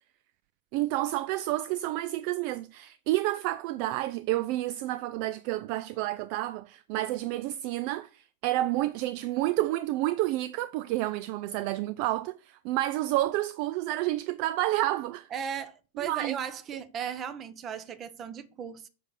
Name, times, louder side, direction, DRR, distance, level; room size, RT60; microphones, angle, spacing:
voice 1, 0.7-15.3 16.0-16.4, right 16 dB, 45° right, 0.4 m, -30 dB
voice 2, 15.3-18.9, right 8 dB, 30° right, 1.1 m, -36 dB
7.2 x 6.7 x 6.8 m
figure-of-eight pair, 90°, 0 cm